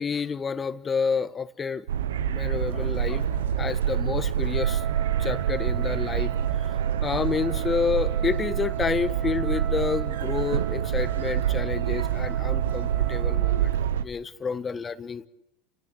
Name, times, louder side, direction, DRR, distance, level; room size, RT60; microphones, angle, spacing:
voice 1, 0.0-1.9 2.1-6.7 7.0-15.3, left 5 dB, 25° left, 12 dB, 1.3 m, -29 dB
sound 1, 1.9-14.0, right 9 dB, 90° right, 0.8 m, -26 dB
Wind instrument woodwind instrument, 4.5-13.9, right 16 dB, 45° right, 2.4 m, -39 dB
29.5 x 17.5 x 8.7 m, 0.90 s
supercardioid pair, 105°, 0 cm